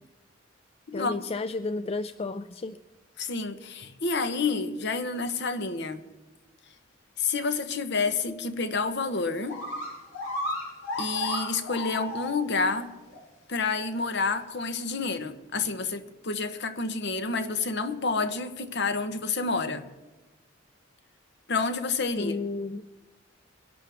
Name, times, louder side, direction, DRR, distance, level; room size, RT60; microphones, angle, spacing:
voice 1, 0.9-2.8 22.2-22.8, left 3 dB, 30° left, 0.4 m, -32 dB
voice 2, 3.2-6.0 7.2-9.6 11.0-12.9 13.5-19.9 21.5-22.3, left 4 dB, 60° left, 1.1 m, -29 dB
sound 1, 9.1-9.2 9.5-12.7 13.1-13.2 14.0-14.1, left 1 dB, 80° left, 6.2 m, -33 dB
23.0 x 11.5 x 3.6 m
head